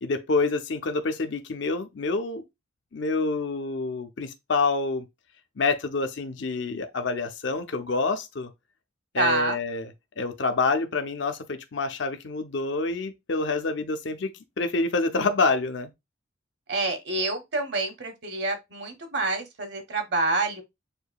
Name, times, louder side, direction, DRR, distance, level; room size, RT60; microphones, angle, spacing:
voice 1, 0.0-2.4 2.9-5.1 5.6-8.5 9.1-9.9 10.2-15.9, left 3 dB, 65° left, 0.6 m, -27 dB
voice 2, 9.2-9.6 16.7-20.6, right 3 dB, 60° right, 1.1 m, -27 dB
6.7 x 2.7 x 2.2 m
head